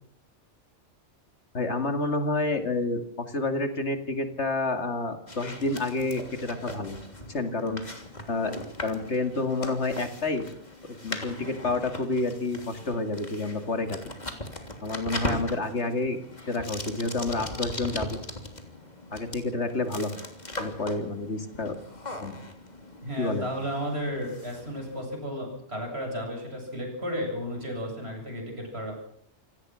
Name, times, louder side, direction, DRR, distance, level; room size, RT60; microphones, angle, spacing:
voice 1, 1.5-7.0 7.3-7.8 8.3-8.5 8.8-10.5 11.0-14.0 14.8-16.2 16.5-18.2 19.1-20.2 20.6-21.7 22.2-22.4 23.2-23.5, left 2 dB, 65° left, 7 dB, 2.7 m, -29 dB
sound 1, 5.3-25.1, left 1 dB, 35° left, 3.3 m, -39 dB
voice 2, 23.0-29.1, equal, 60° right, 2 dB, 8.2 m, -33 dB
27.5 x 17.5 x 6.4 m, 0.67 s
omnidirectional pair, 1.2 m